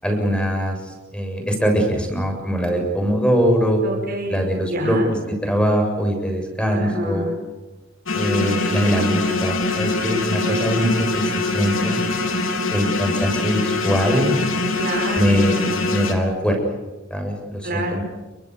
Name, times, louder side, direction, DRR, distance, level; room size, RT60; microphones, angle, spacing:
voice 1, 0.0-3.8 4.3-7.3 8.1-12.0 12.7-14.3 15.2-15.6 15.9-16.6 17.1-18.0, equal, 5° left, 3 dB, 7.4 m, -22 dB
voice 2, 3.8-4.4 4.7-5.1 6.7-7.3 10.4-10.7 14.7-15.8 17.6-18.0, equal, 45° right, 1 dB, 6.2 m, -27 dB
sound 1, 8.1-16.1, left 3 dB, 70° left, 4.1 m, -23 dB
29.5 x 24.0 x 8.4 m, 1.1 s
head